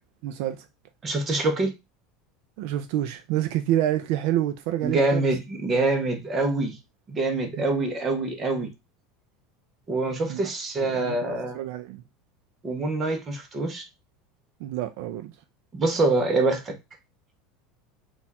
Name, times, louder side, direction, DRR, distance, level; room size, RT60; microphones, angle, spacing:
voice 1, 0.2-0.6 2.6-5.3 10.3-10.5 10.9-12.0 14.6-15.3, right 12 dB, 60° right, 0.4 m, -28 dB
voice 2, 1.0-1.7 4.8-6.8 7.1-8.7 9.9-11.6 12.6-13.8 15.7-16.7, right 2 dB, 20° right, 0.8 m, -25 dB
4.3 x 2.4 x 4.1 m
supercardioid pair, 165°, 0 cm